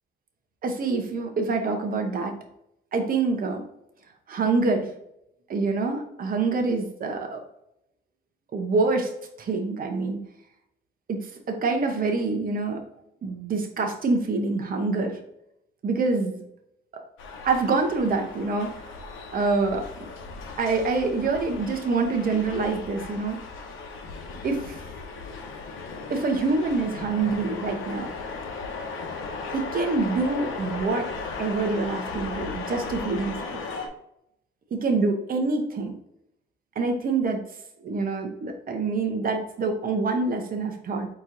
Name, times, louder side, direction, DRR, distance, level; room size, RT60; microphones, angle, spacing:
voice 1, 0.6-2.3 2.9-3.6 4.3-4.9 5.5-7.4 8.5-9.1 9.4-10.2 11.1-12.8 13.2-15.2 15.8-16.4 17.4-18.7 19.3-19.9 20.6-23.4 24.4-24.8 26.1-28.1 29.5-31.1 31.4-33.6 34.7-35.9 36.8-37.4 37.8-41.1, right 3 dB, 45° right, 3 dB, 0.9 m, -26 dB
sound 1, 17.2-33.9, left 4 dB, 90° left, 0.8 m, -36 dB
4.3 x 3.0 x 3.8 m, 0.79 s
cardioid pair, 90°, 20 cm